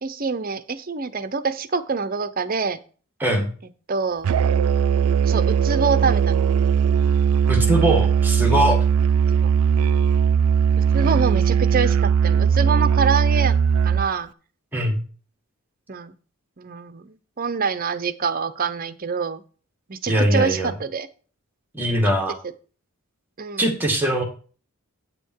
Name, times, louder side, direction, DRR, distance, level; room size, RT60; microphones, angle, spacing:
voice 1, 0.0-2.8 3.9-4.3 5.2-6.4 9.3-9.5 10.9-13.5 13.8-14.3 15.9-16.1 16.6-19.4 19.9-21.1 23.4-23.7, right 5 dB, 40° right, 12 dB, 0.7 m, -25 dB
voice 2, 3.2-3.5 7.5-8.8 14.7-15.0 20.1-20.7 21.7-22.4 23.6-24.2, right 1 dB, 10° right, 1 dB, 2.0 m, -21 dB
Musical instrument, 4.2-14.1, right 7 dB, 75° right, 0.3 m, -19 dB
9.2 x 6.9 x 4.6 m, 0.39 s
head